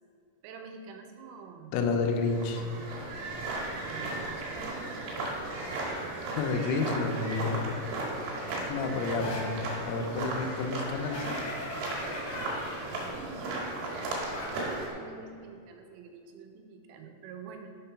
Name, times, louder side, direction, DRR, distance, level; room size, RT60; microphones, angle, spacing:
voice 1, 0.4-1.7 2.5-2.9 3.8-5.0 13.0-17.8, right 5 dB, 85° right, 5 dB, 3.0 m, -47 dB
voice 2, 1.7-2.6 6.3-7.6 8.6-11.4, left 4 dB, 85° left, 3 dB, 3.3 m, -30 dB
sound 1, 2.1-14.9, right 2 dB, 65° right, 3.0 m, -36 dB
sound 2, 9.2-9.5 11.1-12.8 14.3-14.5, left 1 dB, 65° left, 1.7 m, -39 dB
7.6 x 5.1 x 5.7 m, 2.5 s
omnidirectional pair, 5.9 m